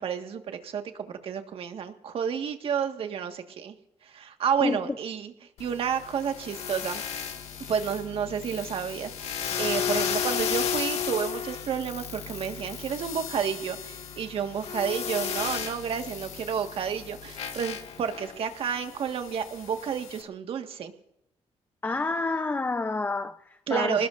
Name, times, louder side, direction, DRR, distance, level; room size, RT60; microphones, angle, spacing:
voice 1, 0.0-3.7 4.0-5.3 5.6-7.0 7.7-20.9 23.7-24.1, right 7 dB, 60° right, 1.7 m, -30 dB
voice 2, 4.6-5.0 21.8-24.1, left 3 dB, 20° left, 0.7 m, -29 dB
sound 1, 5.6-20.2, left 8 dB, 80° left, 1.9 m, -34 dB
26.5 x 19.5 x 2.6 m
cardioid pair, 130°, 11 cm